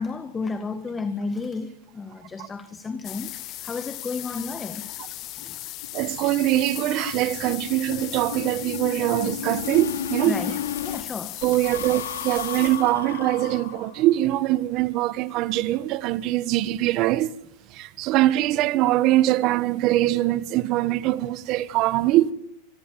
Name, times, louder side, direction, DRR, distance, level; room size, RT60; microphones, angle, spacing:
voice 1, 0.0-4.9 5.3-5.6 10.2-10.6 10.8-11.4, left 4 dB, 20° left, 1.8 m, -32 dB
sound 1, 3.0-13.1, left 17 dB, 45° left, 0.8 m, -37 dB
sound 2, 5.0-5.1 5.4-5.6 5.8-11.0 11.4-14.2, left 9 dB, 90° left, 4.2 m, -34 dB
voice 2, 5.9-10.4 11.4-17.3 17.7-22.3, right 15 dB, 45° right, 1.4 m, -23 dB
26.0 x 19.0 x 7.7 m
hypercardioid pair, 115°, 0 cm